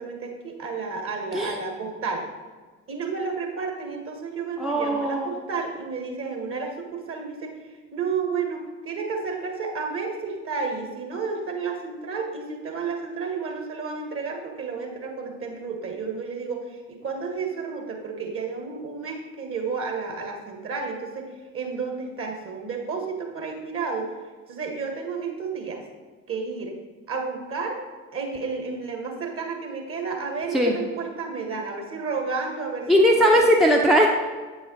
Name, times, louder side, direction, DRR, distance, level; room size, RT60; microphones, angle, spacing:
voice 1, 0.0-2.3 2.9-7.6 7.9-21.3 21.5-24.1 24.5-25.8 26.3-26.7 27.1-27.8 28.1-33.5, right 4 dB, 35° right, 2 dB, 1.6 m, -31 dB
voice 2, 4.6-5.3 30.5-30.7 32.9-34.1, equal, ahead, 0 dB, 0.7 m, -19 dB
8.3 x 4.9 x 4.0 m, 1.4 s
figure-of-eight pair, 55°, 36 cm